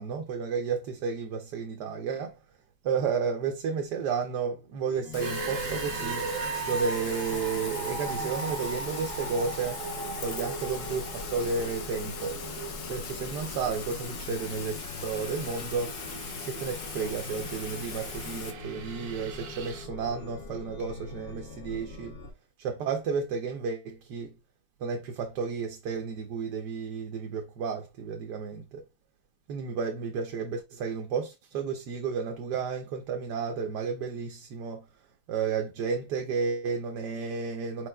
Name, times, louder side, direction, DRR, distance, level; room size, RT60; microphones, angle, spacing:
voice 1, 0.0-2.3 2.8-6.3 6.6-9.8 10.2-12.4 12.9-16.0 16.5-22.1 22.6-24.4 24.8-28.8 29.5-34.8 35.3-37.9, right 5 dB, 85° right, 1.3 m, -32 dB
Chime, 4.8-22.3, left 3 dB, 50° left, 0.7 m, -44 dB
Rain, 5.1-18.5, left 6 dB, 75° left, 1.3 m, -40 dB
sound 1, 5.2-19.9, right 5 dB, 60° right, 0.9 m, -39 dB
4.7 x 4.6 x 2.2 m
omnidirectional pair, 1.7 m